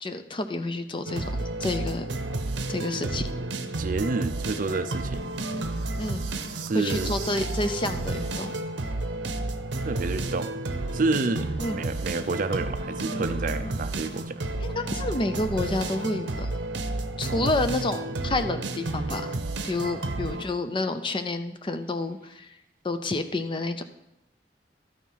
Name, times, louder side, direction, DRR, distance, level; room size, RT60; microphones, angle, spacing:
voice 1, 0.0-1.3 1.6-2.1 2.7-3.3 6.0-6.3 6.7-8.5 11.6-11.8 14.6-16.5 17.2-19.4 19.6-22.5 22.8-23.8, left 2 dB, 30° left, 9 dB, 0.6 m, -29 dB
sound 1, 1.1-20.4, right 2 dB, 85° right, 0.8 m, -31 dB
voice 2, 3.8-5.2 6.5-7.1 9.8-10.5 10.9-14.4 17.3-17.5, right 3 dB, 50° right, 11 dB, 0.5 m, -29 dB
12.5 x 4.6 x 5.5 m, 0.88 s
head